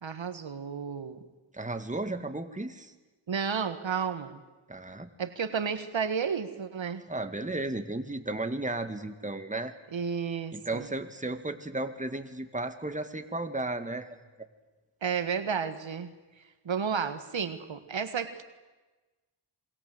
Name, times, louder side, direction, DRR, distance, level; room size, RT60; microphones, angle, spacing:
voice 1, 0.0-1.2 3.3-4.4 5.2-7.0 9.9-10.9 15.0-16.1 16.7-18.4, right 6 dB, 65° right, 9 dB, 1.8 m, -32 dB
voice 2, 1.5-2.9 4.7-5.1 7.1-9.7 10.5-14.1, right 2 dB, 15° right, 7 dB, 2.2 m, -34 dB
27.5 x 22.5 x 7.9 m, 1.2 s
cardioid pair, 50°, 48 cm